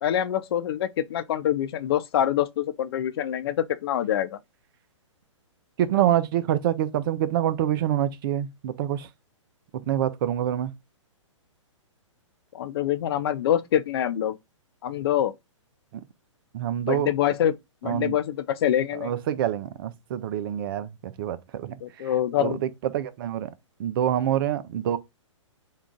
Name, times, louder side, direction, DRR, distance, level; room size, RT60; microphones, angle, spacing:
voice 1, 0.0-4.4 12.5-14.4 14.8-15.3 16.8-17.5 17.8-19.1 21.8-22.6, left 10 dB, 50° left, 0.5 m, -25 dB
voice 2, 5.8-9.1 9.7-10.7 16.5-17.1 17.8-18.2 19.0-21.7 22.4-22.6 22.9-23.5 23.8-25.0, right 11 dB, 45° right, 0.5 m, -26 dB
3.7 x 2.4 x 3.5 m
hypercardioid pair, 125°, 16 cm